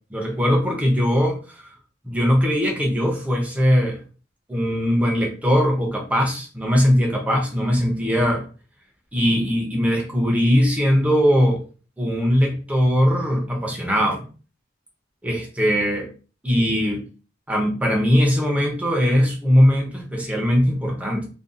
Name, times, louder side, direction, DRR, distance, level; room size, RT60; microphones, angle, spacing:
voice 1, 0.1-1.4 2.0-4.0 4.5-8.5 9.1-11.6 12.0-14.3 15.2-16.1 16.4-17.0 17.5-21.3, equal, 10° right, 0 dB, 0.6 m, -20 dB
2.6 x 2.3 x 2.4 m, 0.36 s
head